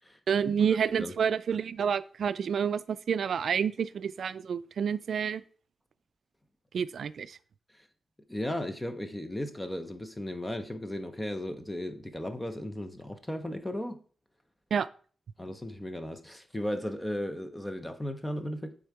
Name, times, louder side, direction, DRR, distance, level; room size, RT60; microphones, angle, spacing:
voice 1, 0.3-5.4 6.7-7.4 14.7-14.9, right 7 dB, 65° right, 16 dB, 0.3 m, -29 dB
voice 2, 8.3-14.0 15.4-18.8, left 1 dB, 10° left, 9 dB, 0.5 m, -35 dB
8.6 x 3.7 x 4.6 m, 0.43 s
wide cardioid pair, 160°, 0 cm